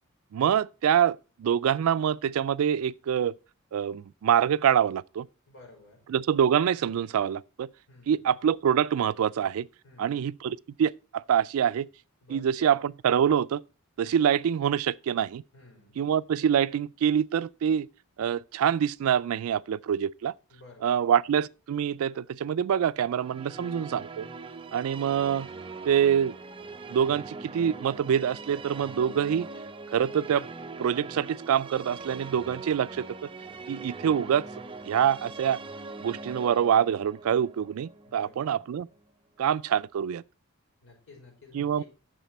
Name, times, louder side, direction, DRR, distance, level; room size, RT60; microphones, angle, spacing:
voice 1, 0.3-3.3 3.7-5.3 6.1-7.7 8.1-9.7 10.0-11.9 12.3-13.6 14.0-15.4 16.0-17.9 18.2-20.3 20.8-24.3 24.7-25.5 25.8-26.3 26.9-29.5 29.9-30.5 30.8-33.0 33.7-34.5 34.8-35.6 36.0-38.9 39.4-40.2 41.5-41.8, right 8 dB, 75° right, 0.3 m, -25 dB
voice 2, 5.5-6.0 7.9-8.3 9.8-10.2 12.2-12.7 15.5-16.0 20.5-21.0 23.5-24.0 38.0-38.6 40.8-41.8, left 3 dB, 65° left, 5.4 m, -53 dB
sound 1, 23.0-39.1, right 3 dB, 25° right, 0.6 m, -42 dB
9.2 x 6.6 x 4.1 m
head